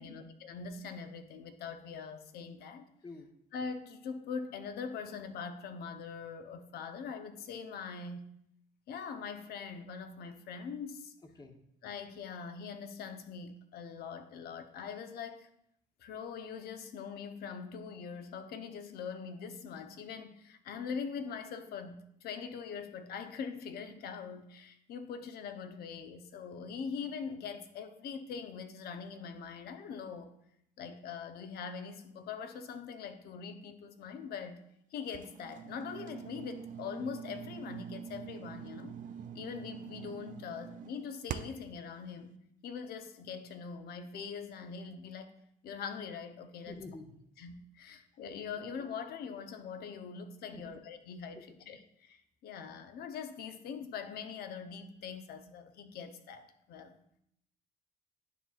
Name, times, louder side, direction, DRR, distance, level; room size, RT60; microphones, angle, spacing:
voice 1, 0.0-2.9 3.5-8.3 8.9-11.1 11.8-15.5 16.0-30.3 30.8-34.6 34.9-39.0 39.3-42.3 42.6-45.3 45.6-46.8 47.4-57.0, left 6 dB, 70° left, 8 dB, 0.7 m, -42 dB
sound 1, 35.1-41.7, right 8 dB, 55° right, 0.4 m, -45 dB
voice 2, 46.7-47.2 50.5-50.7 51.3-51.4, left 3 dB, 25° left, 5 dB, 0.9 m, -48 dB
9.9 x 5.6 x 2.4 m, 0.75 s
cardioid pair, 110°, 17 cm